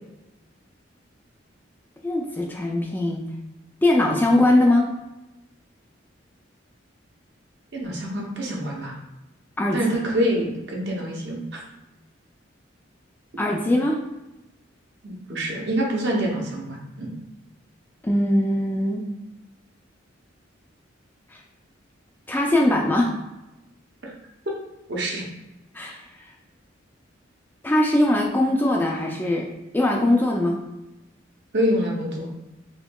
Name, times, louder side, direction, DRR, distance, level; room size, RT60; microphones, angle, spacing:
voice 1, 2.0-3.2 3.8-4.9 9.6-9.8 13.4-14.0 18.0-19.0 22.3-23.1 25.7-26.0 27.6-29.5 29.7-30.6, left 1 dB, 10° left, -1 dB, 0.3 m, -21 dB
voice 2, 7.7-8.9 9.7-11.6 15.0-17.1 24.9-25.2 31.5-32.3, equal, 60° right, -2 dB, 0.8 m, -26 dB
4.2 x 2.8 x 2.2 m, 0.97 s
head